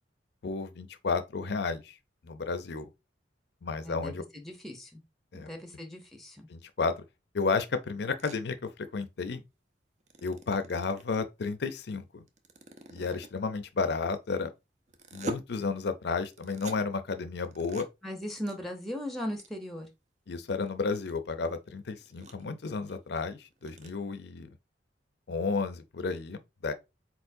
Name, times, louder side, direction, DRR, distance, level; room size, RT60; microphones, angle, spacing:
voice 1, 0.4-1.9 2.2-2.9 3.6-4.2 5.3-5.5 6.5-6.9 7.3-9.4 10.2-12.2 12.9-14.5 15.1-17.9 20.3-24.5 25.3-26.7, left 4 dB, 65° left, 0.5 m, -32 dB
voice 2, 3.8-5.0 5.4-6.5 18.0-19.9, equal, ahead, 0.7 m, -38 dB
sound 1, 8.2-8.4 10.0-11.2 12.3-13.4 14.9-15.4 16.2-16.8 17.4-17.8 18.3-18.6 18.9-19.0 19.4-19.5 19.8-19.9 20.5-21.1 21.6-21.7 22.0-22.5 22.9-23.0 23.2-23.3 23.5-23.9, right 1 dB, 40° right, 0.6 m, -42 dB
4.4 x 4.2 x 2.6 m
head